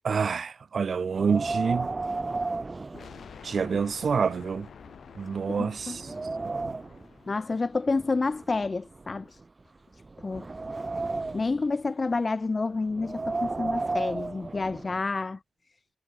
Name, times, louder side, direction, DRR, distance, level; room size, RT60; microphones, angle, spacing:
voice 1, 0.0-1.9 3.4-4.7 5.2-6.1 6.4-6.7, right 5 dB, 70° right, 0.7 m, -27 dB
Wind, 1.1-3.7 4.1-4.2 4.9-5.0 5.4-7.1 7.9-9.4 10.0-11.6 12.9-15.0, right 3 dB, 40° right, 6.3 m, -33 dB
sound 1, 2.9-7.8, left 7 dB, 85° left, 5.0 m, -49 dB
voice 2, 5.5-6.0 7.3-9.3 10.2-10.4 11.3-15.4, left 3 dB, 45° left, 1.1 m, -29 dB
cardioid pair, 45°, 0 cm